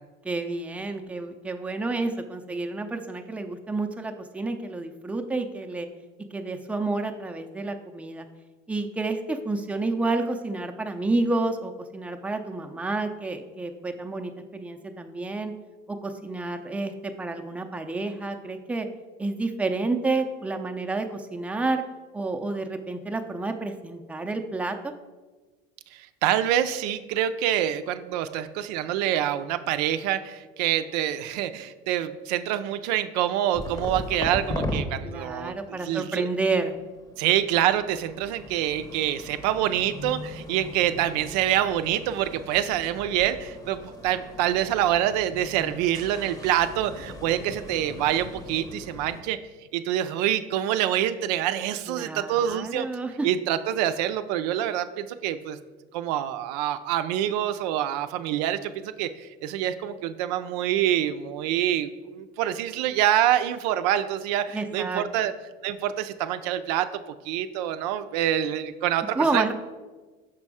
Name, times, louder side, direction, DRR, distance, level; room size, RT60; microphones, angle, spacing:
voice 1, 0.2-5.9 6.3-8.3 8.7-15.5 15.9-18.9 19.2-21.8 22.1-24.9 35.0-36.7 51.9-53.3 64.5-65.0 69.1-69.5, right 3 dB, 5° right, 4 dB, 0.5 m, -29 dB
voice 2, 25.9-36.3 37.2-49.4 49.7-52.9 53.2-55.6 55.9-65.3 65.6-69.5, right 11 dB, 90° right, 11 dB, 0.4 m, -26 dB
sound 1, 33.5-34.9 36.5-49.2, left 1 dB, 20° left, 0.8 m, -38 dB
6.1 x 4.3 x 4.8 m, 1.3 s
supercardioid pair, 110°, 20 cm